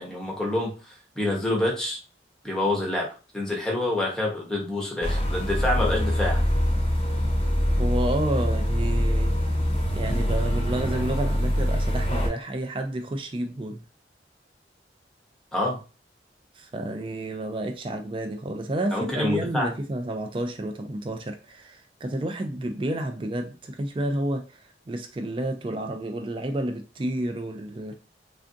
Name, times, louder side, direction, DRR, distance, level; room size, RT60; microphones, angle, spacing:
voice 1, 0.0-2.0 2.4-3.1 3.3-6.4 15.5-15.8 18.9-19.7, left 1 dB, 5° left, -2 dB, 0.8 m, -27 dB
sound 1, 5.0-12.3, equal, 30° left, 0.7 m, -24 dB
voice 2, 7.8-9.6 9.9-13.8 16.6-27.9, right 1 dB, 30° right, 5 dB, 0.4 m, -30 dB
3.4 x 2.5 x 2.5 m, 0.33 s
head